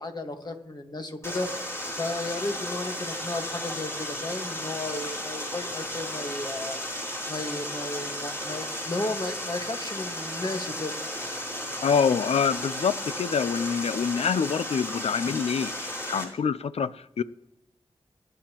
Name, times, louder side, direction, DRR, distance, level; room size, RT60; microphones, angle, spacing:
voice 1, 0.0-6.8 7.3-10.9, left 2 dB, 45° left, 1.6 m, -34 dB
Water, 1.2-16.2, left 1 dB, 25° left, 4.0 m, -34 dB
voice 2, 11.8-17.2, left 6 dB, 85° left, 0.5 m, -26 dB
23.0 x 10.5 x 3.0 m
wide cardioid pair, 70°, 10 cm